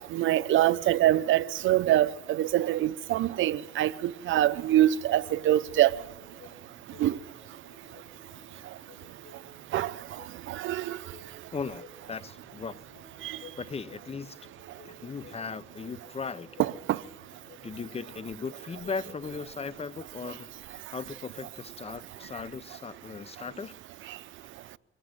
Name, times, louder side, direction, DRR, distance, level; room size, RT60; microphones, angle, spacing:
voice 1, 0.1-5.9 7.0-7.2 9.7-9.9 10.5-11.0 13.2-13.4 16.6-17.0, right 13 dB, 75° right, 0.7 m, -24 dB
sound 1, 5.1-20.2, left 3 dB, 85° left, 7.0 m, -54 dB
voice 2, 11.5-12.7 13.6-14.4 14.8-16.5 17.6-23.7, left 5 dB, 30° left, 0.8 m, -38 dB
23.5 x 19.0 x 7.8 m
cardioid pair, 90°, 20 cm